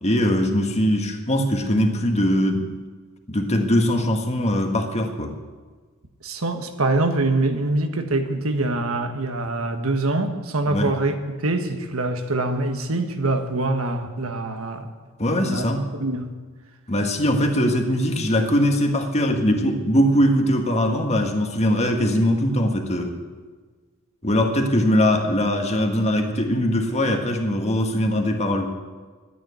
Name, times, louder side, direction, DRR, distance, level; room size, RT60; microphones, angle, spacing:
voice 1, 0.0-2.7 3.3-5.3 10.7-10.9 15.2-15.8 16.9-23.2 24.2-28.7, equal, 30° left, 4 dB, 1.7 m, -21 dB
voice 2, 6.2-11.1 11.4-14.9 15.4-15.6 16.0-16.3, right 2 dB, 90° right, 6 dB, 1.6 m, -24 dB
12.0 x 10.0 x 9.7 m, 1.4 s
head